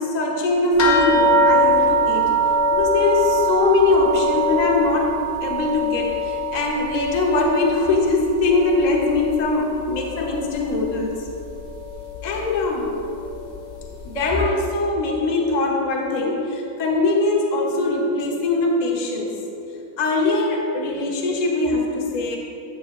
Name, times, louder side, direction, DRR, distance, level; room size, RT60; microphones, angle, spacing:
voice 1, 0.0-2.3 2.7-5.1 5.4-11.2 12.2-12.9 14.0-19.4 20.0-22.4, left 2 dB, 75° left, -1 dB, 0.4 m, -21 dB
sound 1, 0.8-9.6 9.9-10.8 11.6-11.7 12.1-12.2, right 1 dB, 55° left, 1.2 m, -22 dB
9.6 x 7.5 x 2.4 m, 2.8 s
omnidirectional pair, 2.2 m